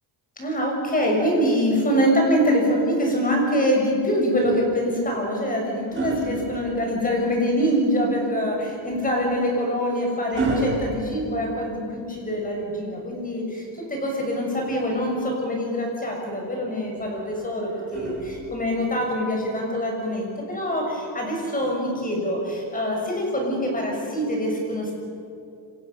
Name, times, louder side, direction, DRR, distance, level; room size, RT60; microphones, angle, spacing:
voice 1, 0.4-24.9, equal, 20° left, 0 dB, 6.7 m, -24 dB
sound 1, 4.8-7.3 8.9-12.0 13.8-15.0 17.0-18.8 20.0-20.2, right 2 dB, 25° right, 7.6 m, -33 dB
28.5 x 25.5 x 7.1 m, 2.6 s
cardioid pair, 170°, 43 cm